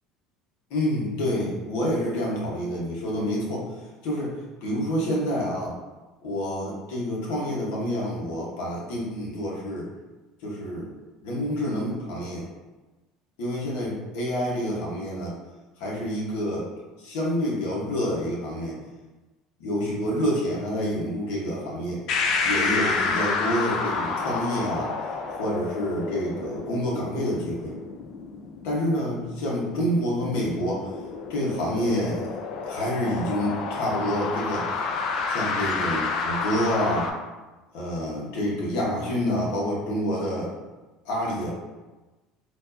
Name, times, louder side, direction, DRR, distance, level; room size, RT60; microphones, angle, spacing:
voice 1, 0.7-3.7 4.0-4.3 4.6-5.7 6.2-9.9 10.4-10.9 11.2-12.4 13.4-15.3 15.8-16.7 17.0-18.7 19.6-22.0 22.4-24.9 25.4-27.7 28.6-30.9 31.3-32.3 32.6-34.8 35.3-37.1 37.7-40.5 41.0-41.5, equal, 80° left, -4 dB, 1.2 m, -28 dB
sound 1, 22.1-37.1, left 4 dB, 55° left, 0.4 m, -30 dB
4.4 x 2.6 x 2.7 m, 1.2 s
supercardioid pair, 110°, 0 cm